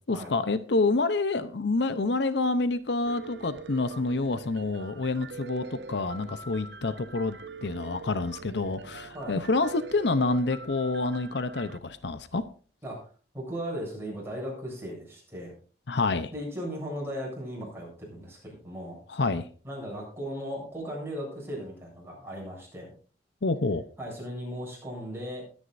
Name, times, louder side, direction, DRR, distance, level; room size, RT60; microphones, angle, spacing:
voice 1, 0.1-12.4 15.9-16.3 19.1-19.4 23.4-23.8, left 3 dB, 65° left, 12 dB, 0.8 m, -28 dB
Piano, 3.1-11.8, right 4 dB, 70° right, 0.7 m, -44 dB
voice 2, 9.1-9.5 12.8-13.0 13.3-15.5 16.3-19.0 19.6-22.9 24.0-25.5, equal, 15° right, -3 dB, 7.7 m, -37 dB
20.5 x 9.8 x 2.6 m, 0.40 s
head